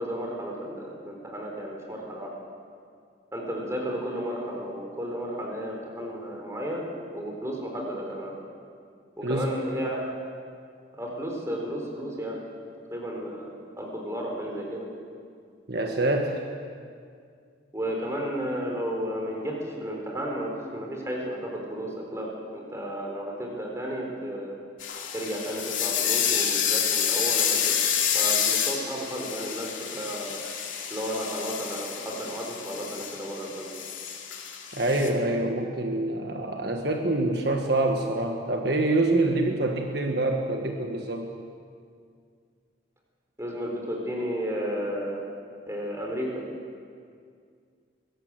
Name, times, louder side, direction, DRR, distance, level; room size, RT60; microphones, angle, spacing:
voice 1, 0.0-2.3 3.3-6.8 7.1-8.3 9.2-10.0 11.0-12.4 12.9-13.5 13.8-14.9 17.7-24.6 25.1-27.7 28.1-30.4 30.9-33.7 43.4-45.2 45.7-46.4, equal, 15° right, -1 dB, 4.0 m, -33 dB
voice 2, 15.7-16.4 34.7-41.3, right 2 dB, 55° right, 2 dB, 1.6 m, -26 dB
sound 1, 24.8-35.1, left 8 dB, 85° left, 2.8 m, -28 dB
23.0 x 17.5 x 7.8 m, 2.2 s
head